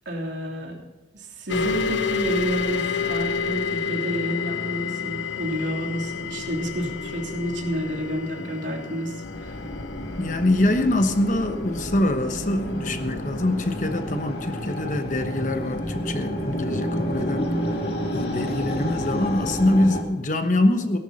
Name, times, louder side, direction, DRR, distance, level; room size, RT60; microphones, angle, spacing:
voice 1, 0.0-0.8 1.1-9.5, equal, 85° right, 0 dB, 3.2 m, -30 dB
sound 1, 1.5-14.9, left 5 dB, 90° left, 0.6 m, -31 dB
sound 2, 9.2-20.0, equal, 60° left, 2.4 m, -30 dB
voice 2, 10.2-17.8 18.1-21.0, left 1 dB, 45° left, 7 dB, 1.1 m, -24 dB
18.5 x 11.5 x 4.2 m, 1.1 s
head